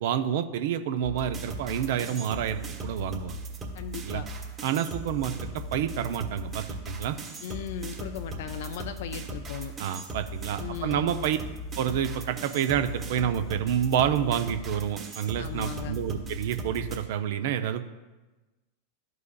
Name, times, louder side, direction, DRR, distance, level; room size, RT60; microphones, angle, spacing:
voice 1, 0.0-3.4 4.0-4.2 4.6-5.4 5.7-7.2 9.8-11.4 11.8-17.8, right 9 dB, 65° right, 9 dB, 0.5 m, -28 dB
sound 1, 1.0-17.0, right 1 dB, 30° right, 1.5 m, -38 dB
voice 2, 3.7-4.3 7.4-9.7 10.6-11.2 15.4-16.0, left 10 dB, 65° left, 9 dB, 0.4 m, -37 dB
12.5 x 4.7 x 2.3 m, 1.2 s
hypercardioid pair, 95°, 0 cm